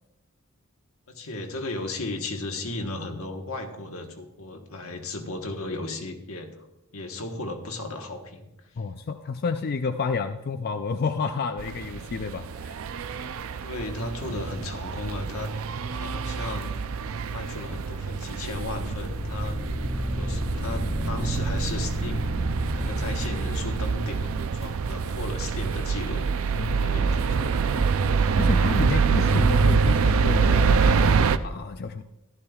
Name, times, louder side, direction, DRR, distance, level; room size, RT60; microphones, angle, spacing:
voice 1, 1.1-6.5 6.9-8.5 13.6-15.5 15.9-16.7 17.3-19.6 20.1-22.3 22.8-27.8, left 2 dB, 85° left, 4 dB, 1.3 m, -35 dB
voice 2, 8.8-12.8 14.3-14.4 26.5-26.9 28.4-32.0, left 4 dB, 45° left, 7 dB, 0.4 m, -30 dB
sound 1, 11.6-31.4, right 5 dB, 70° right, 0.5 m, -25 dB
sound 2, 18.5-24.7, equal, 15° right, 2.1 m, -31 dB
14.0 x 12.0 x 2.4 m, 0.89 s
head